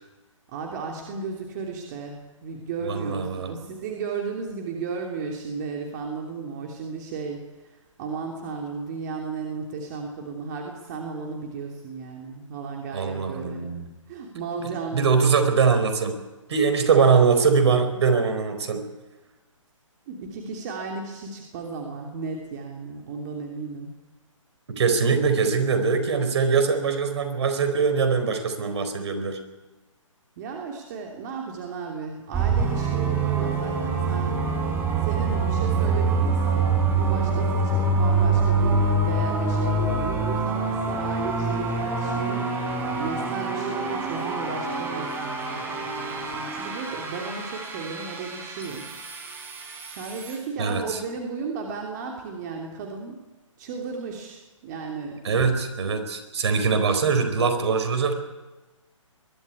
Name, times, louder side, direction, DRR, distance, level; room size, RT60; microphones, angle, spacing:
voice 1, 0.5-13.7 14.1-15.5 20.1-23.9 30.4-34.3 34.9-48.9 49.9-53.2 53.6-55.5, right 5 dB, 35° right, 1 dB, 3.0 m, -34 dB
voice 2, 2.9-3.6 12.9-13.9 14.9-16.2 16.5-18.8 24.8-29.4 50.6-51.0 55.2-58.1, right 5 dB, 55° right, 7 dB, 4.3 m, -22 dB
sound 1, 32.3-50.4, right 3 dB, 15° right, 3.8 m, -25 dB
22.5 x 12.0 x 9.7 m, 1.1 s
figure-of-eight pair, 140°, 17 cm